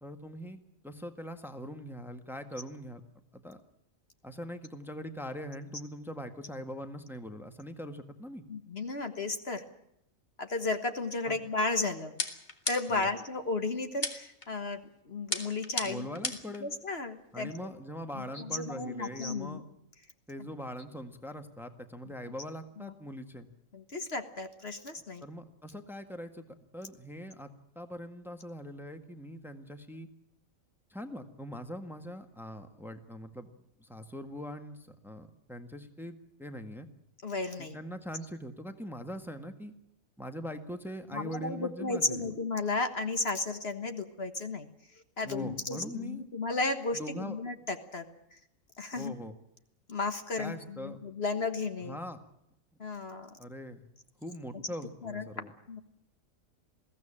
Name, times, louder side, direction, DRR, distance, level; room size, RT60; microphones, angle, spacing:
voice 1, 0.0-3.0 3.3-3.6 4.2-8.4 11.2-11.4 12.9-13.1 15.8-16.7 17.3-19.6 20.3-23.5 25.2-26.4 26.7-27.5 27.7-30.1 30.9-33.5 33.8-36.9 37.7-39.7 40.2-42.3 45.2-46.2 46.9-47.4 48.9-49.3 50.4-51.0 51.8-52.2 53.4-53.8 54.2-55.5, equal, ahead, 7 dB, 1.6 m, -42 dB
voice 2, 8.5-9.6 10.4-12.1 12.7-16.2 16.6-17.5 18.1-19.6 22.1-22.2 22.8-22.9 23.7-25.2 37.2-37.9 41.1-44.7 44.9-48.1 48.3-48.4 48.8-49.1 49.9-52.0 52.8-53.3 55.0-55.8, left 3 dB, 50° left, 8 dB, 1.7 m, -34 dB
sound 1, 12.2-13.1 14.0-14.5 15.3-16.6, left 2 dB, 35° left, 2.3 m, -35 dB
21.5 x 16.0 x 8.8 m, 0.79 s
omnidirectional pair, 1.4 m